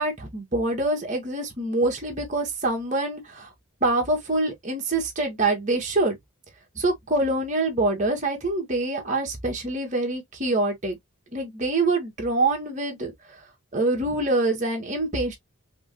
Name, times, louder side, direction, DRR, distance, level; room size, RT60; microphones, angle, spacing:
voice 1, 0.0-3.5 3.8-6.2 6.7-11.0 11.3-13.4 13.7-15.4, right 2 dB, 35° right, 1.9 m, -25 dB
5.0 x 3.3 x 2.2 m
head